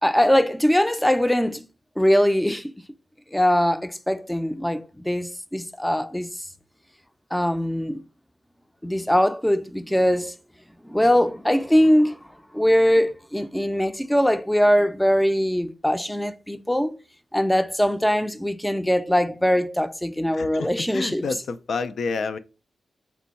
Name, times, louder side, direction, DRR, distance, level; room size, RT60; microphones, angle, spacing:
voice 1, 0.0-1.7 2.0-2.7 3.3-6.3 7.3-8.0 8.8-10.3 10.8-12.2 12.5-16.9 17.3-21.3, equal, 5° left, 0.4 m, -21 dB
voice 2, 20.3-20.7 20.9-22.4, left 4 dB, 75° left, 0.3 m, -29 dB
4.2 x 2.2 x 4.0 m
cardioid pair, 55°, 0 cm